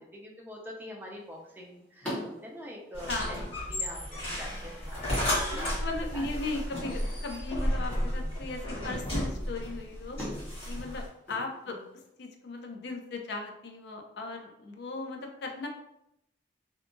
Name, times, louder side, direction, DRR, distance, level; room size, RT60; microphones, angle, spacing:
voice 1, 0.1-5.1 5.5-5.8 6.1-6.3 11.6-11.9, equal, 10° right, -2 dB, 0.4 m, -44 dB
sound 1, 1.0-12.1, equal, 5° left, 0.8 m, -46 dB
sound 2, 2.9-11.1, equal, 30° left, 1.2 m, -33 dB
voice 2, 3.1-3.6 5.5-10.2 10.7-11.8 12.2-15.7, left 3 dB, 65° left, 2 dB, 0.4 m, -37 dB
2.7 x 2.3 x 2.5 m, 0.81 s
head